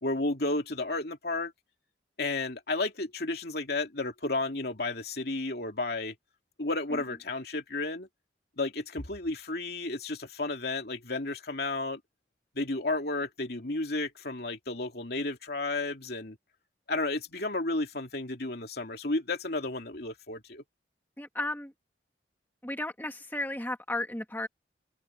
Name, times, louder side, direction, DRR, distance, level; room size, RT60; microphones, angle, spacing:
voice 1, 0.0-1.5 2.2-6.1 6.6-8.1 8.6-12.0 12.5-16.4 16.9-20.6, left 2 dB, 60° left, 2.8 m, -32 dB
voice 2, 21.2-21.7 22.6-24.5, left 1 dB, 10° left, 1.6 m, -34 dB
open air
head